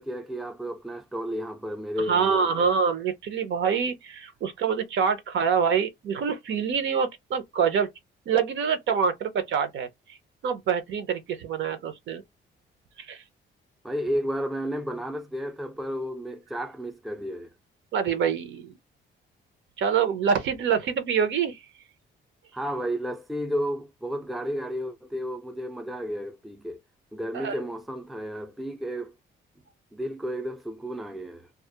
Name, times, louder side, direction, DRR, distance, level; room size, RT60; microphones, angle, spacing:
voice 1, 0.0-2.7 13.8-17.5 22.5-26.8 27.1-29.2 29.9-31.5, equal, ahead, 0.5 m, -32 dB
voice 2, 2.1-7.9 8.3-9.9 10.4-12.2 13.1-13.2 17.9-18.7 19.8-21.6 27.3-27.5, right 6 dB, 70° right, 0.7 m, -25 dB
2.3 x 2.0 x 2.8 m
cardioid pair, 90°, 20 cm